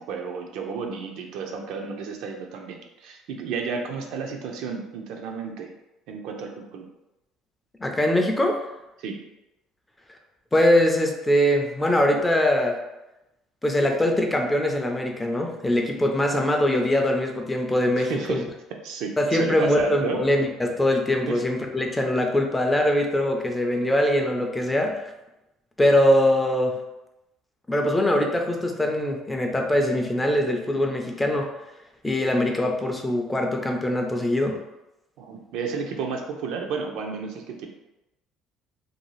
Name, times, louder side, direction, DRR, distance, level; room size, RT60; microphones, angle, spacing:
voice 1, 0.0-5.7 6.1-6.9 9.0-9.2 18.0-18.5 18.8-20.2 21.3-21.4 35.2-37.7, right 5 dB, 70° right, 3 dB, 0.4 m, -32 dB
voice 2, 7.8-8.6 10.5-12.8 13.6-18.4 19.2-25.0 25.8-26.8 27.7-31.5 32.0-34.6, left 1 dB, 10° left, 2 dB, 0.3 m, -22 dB
2.6 x 2.3 x 3.0 m, 0.93 s
cardioid pair, 135°, 0 cm